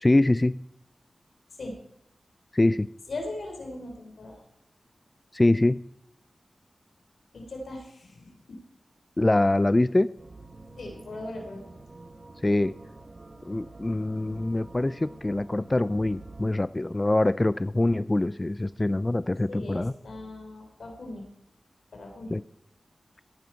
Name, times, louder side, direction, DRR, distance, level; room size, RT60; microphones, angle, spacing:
voice 1, 0.0-0.6 2.5-2.9 5.3-5.8 9.2-10.1 12.4-12.7 13.5-19.9 22.3-22.4, left 2 dB, 30° left, 16 dB, 0.3 m, -24 dB
voice 2, 3.1-4.4 7.3-8.6 10.8-11.7 19.5-21.2 21.9-22.3, left 2 dB, 85° left, 1 dB, 3.5 m, -39 dB
sound 1, 10.2-16.5, right 2 dB, 40° right, 1.6 m, -47 dB
15.5 x 9.3 x 4.5 m, 0.77 s
cardioid pair, 45°, 0 cm